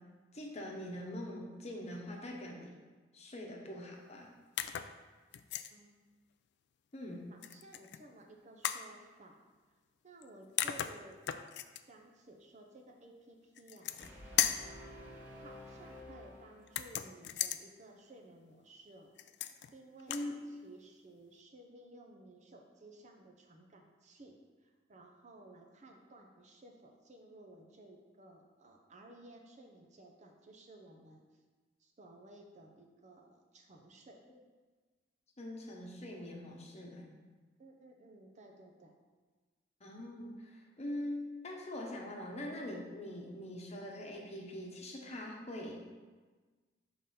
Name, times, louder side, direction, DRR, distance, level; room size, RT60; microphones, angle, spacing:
voice 1, 0.3-2.7 3.1-4.3 6.9-7.2 20.1-20.3 35.4-37.1 39.8-45.8, left 1 dB, 35° left, 0 dB, 1.0 m, -43 dB
sound 1, 4.6-4.9 5.3-5.7 7.4-8.0 8.6-8.9 10.2-10.3 10.6-11.8 13.6-14.1 14.4-14.7 16.7-17.6 19.2-19.7 20.0-20.3, left 11 dB, 65° left, 0.3 m, -36 dB
voice 2, 7.3-9.4 10.0-11.3 11.7-14.0 14.6-19.2 19.7-31.4 31.8-34.2 37.6-39.0, right 2 dB, 40° right, 2 dB, 0.7 m, -56 dB
Brass instrument, 14.0-17.1, left 1 dB, 10° right, 1.4 m, -51 dB
6.0 x 3.8 x 5.5 m, 1.4 s
head